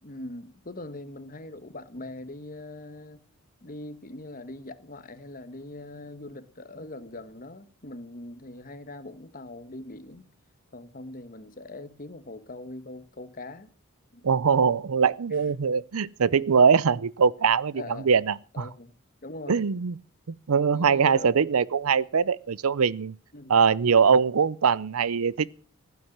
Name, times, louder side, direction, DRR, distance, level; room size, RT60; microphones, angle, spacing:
voice 1, 0.0-3.2 3.6-10.3 10.7-13.7 14.1-14.7 15.3-15.5 17.7-18.1 18.5-18.9 19.2-19.6 20.7-21.5 23.3-23.5, left 2 dB, 40° left, 1.3 m, -42 dB
voice 2, 14.2-18.6 19.5-19.9 20.5-23.1 23.5-25.5, right 6 dB, 90° right, 0.6 m, -22 dB
15.5 x 9.5 x 7.3 m
head